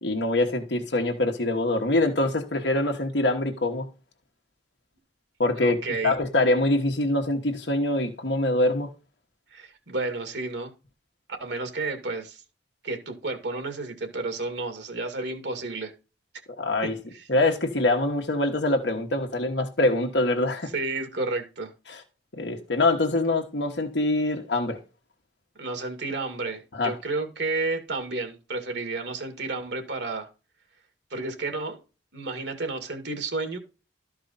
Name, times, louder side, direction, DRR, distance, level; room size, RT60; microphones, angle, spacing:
voice 1, 0.0-3.9 5.4-5.8 6.0-8.9 16.6-16.9 17.3-20.7 21.9-22.0 22.4-24.8 26.7-26.9, left 2 dB, 70° left, 1.4 m, -24 dB
voice 2, 5.6-6.1 9.5-10.7 11.4-12.4 12.8-15.9 16.8-17.3 20.7-21.7 25.6-30.3 31.1-31.8 32.1-33.6, right 3 dB, 65° right, 2.2 m, -31 dB
13.0 x 4.8 x 4.1 m
head